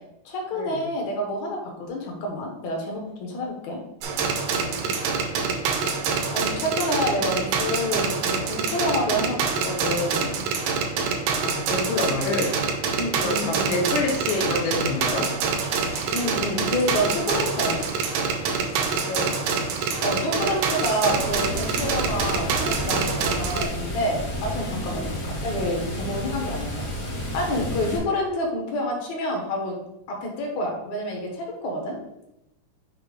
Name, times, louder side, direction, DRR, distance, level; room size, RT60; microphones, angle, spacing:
voice 1, 0.3-3.8 6.3-10.5 13.0-14.0 16.1-18.0 20.0-26.9 27.3-29.8 30.1-32.0, left 1 dB, 65° left, 0 dB, 2.2 m, -28 dB
sound 1, 4.0-23.6, right 5 dB, 75° right, 2.1 m, -26 dB
voice 2, 4.7-5.0 11.3-12.6 13.1-15.4 19.1-19.4 24.9-25.1, left 2 dB, 85° left, 0 dB, 2.7 m, -28 dB
sound 2, 14.0-23.1, equal, 20° left, 0.3 m, -42 dB
Water, 21.2-28.0, equal, 40° left, 1.1 m, -31 dB
6.7 x 2.8 x 5.2 m, 0.86 s
omnidirectional pair, 3.7 m